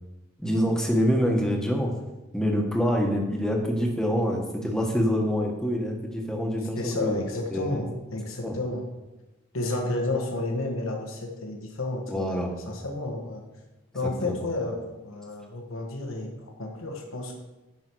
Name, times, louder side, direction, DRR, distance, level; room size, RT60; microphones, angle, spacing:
voice 1, 0.4-1.9 2.3-7.2 7.5-7.8 8.4-8.5 12.1-12.5 14.2-14.5, equal, 5° left, 1 dB, 1.2 m, -26 dB
voice 2, 6.8-8.9 9.5-13.4 13.9-17.3, left 2 dB, 90° left, 1 dB, 1.3 m, -31 dB
10.0 x 6.0 x 4.6 m, 1.1 s
head